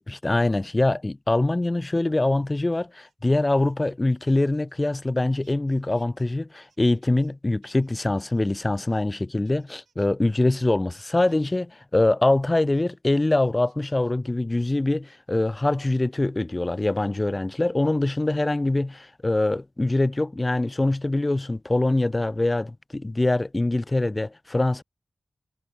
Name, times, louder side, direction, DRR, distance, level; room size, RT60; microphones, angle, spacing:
voice 1, 0.0-24.8, left 2 dB, 25° left, 0.4 m, -24 dB
sound 1, 2.4-5.1 5.4-7.3 7.6-9.2 9.4-10.1 10.5-10.6 10.9-11.6 12.0-12.4 12.7-12.8 13.2-14.3 15.1-15.5 16.8-17.1 17.7-17.9 18.5-19.1 20.5-21.7 21.9-22.3, right 6 dB, 90° right, 4.5 m, -67 dB
wide cardioid pair, 75°, 0 cm